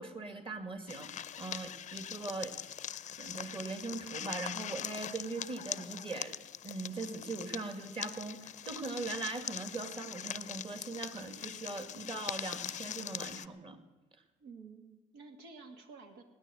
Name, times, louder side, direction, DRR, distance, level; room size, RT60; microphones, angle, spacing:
voice 1, 0.0-2.6 3.2-6.3 6.6-13.8, right 3 dB, 30° right, 8 dB, 2.1 m, -40 dB
sound 1, 0.9-13.5, left 10 dB, 45° left, 0.6 m, -42 dB
voice 2, 14.4-16.2, right 4 dB, 85° right, 5 dB, 2.4 m, -51 dB
18.5 x 10.0 x 7.8 m, 1.1 s
cardioid pair, 110°, 17 cm